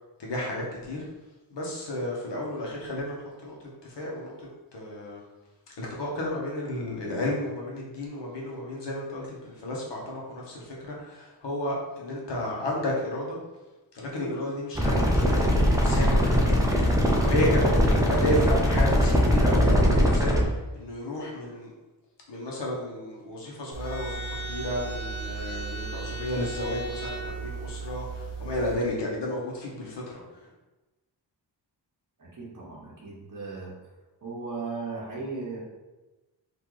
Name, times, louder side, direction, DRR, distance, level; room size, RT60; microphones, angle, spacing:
voice 1, 0.2-1.0 1.5-3.2 3.4-3.5 4.0-4.3 4.7-5.2 5.8-13.4 13.9-16.5 17.2-20.4 20.7-21.7 22.3-28.1 28.4-30.0, left 1 dB, 70° left, -3 dB, 1.2 m, -32 dB
sound 1, 14.7-20.4, equal, 10° right, 0.5 m, -21 dB
sound 2, 23.7-28.7, right 3 dB, 35° left, 1.0 m, -35 dB
voice 2, 32.2-33.7 34.2-35.6, right 4 dB, 45° right, -6 dB, 1.5 m, -36 dB
3.8 x 2.8 x 4.8 m, 1.1 s
wide cardioid pair, 140°, 44 cm